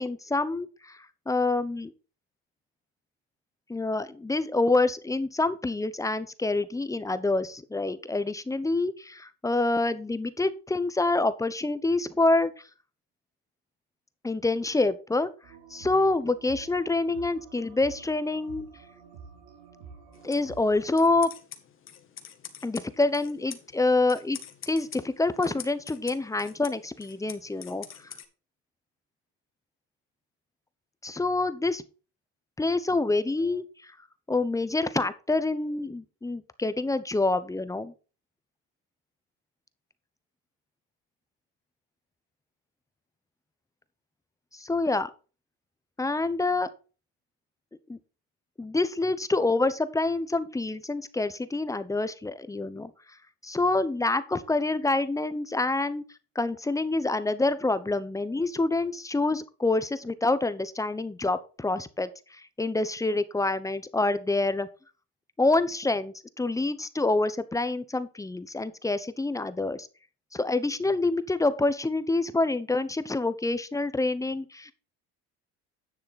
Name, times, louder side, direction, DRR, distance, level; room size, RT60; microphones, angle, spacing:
voice 1, 0.0-1.9 3.7-12.7 14.2-15.3 15.7-18.7 20.2-21.3 22.6-24.4 24.7-28.2 31.0-31.8 32.6-34.0 34.3-37.9 44.5-45.1 46.0-46.7 47.9-48.0 48.6-53.2 53.4-56.0 56.3-64.7 65.4-69.9 70.3-74.7, left 2 dB, 10° left, 13 dB, 0.9 m, -27 dB
sound 1, 15.4-21.2, right 6 dB, 90° right, 3.3 m, -49 dB
sound 2, 20.1-28.2, left 8 dB, 40° left, 1.8 m, -46 dB
10.5 x 6.6 x 4.1 m, 0.35 s
supercardioid pair, 105°, 30 cm